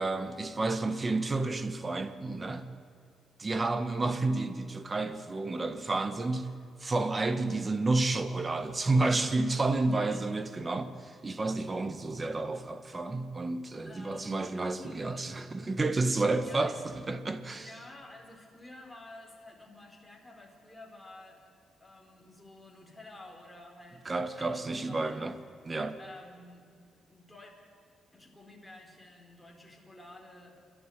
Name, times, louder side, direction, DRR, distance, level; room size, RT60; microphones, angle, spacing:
voice 1, 0.0-2.7 3.4-6.5 6.8-17.7 24.0-25.4 25.6-26.0, right 2 dB, 25° right, 1.5 m, -30 dB
voice 2, 9.9-10.2 13.8-14.4 14.8-15.2 16.4-16.8 17.5-21.5 21.8-25.2 26.0-27.5 28.1-30.6, left 2 dB, 5° left, 4.5 m, -51 dB
29.0 x 12.0 x 9.5 m
cardioid pair, 100°, 0 cm